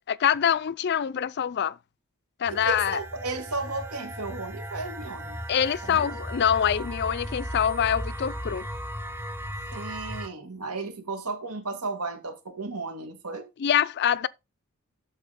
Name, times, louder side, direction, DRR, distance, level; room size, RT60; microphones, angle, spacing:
voice 1, 0.1-1.8 2.4-3.0 5.5-8.7 13.6-14.3, left 9 dB, 50° left, 0.4 m, -25 dB
sound 1, 2.4-10.3, equal, 10° right, 0.7 m, -36 dB
voice 2, 2.5-5.4 5.8-6.2 9.7-13.5, right 3 dB, 85° right, 2.2 m, -34 dB
12.0 x 4.2 x 4.2 m
head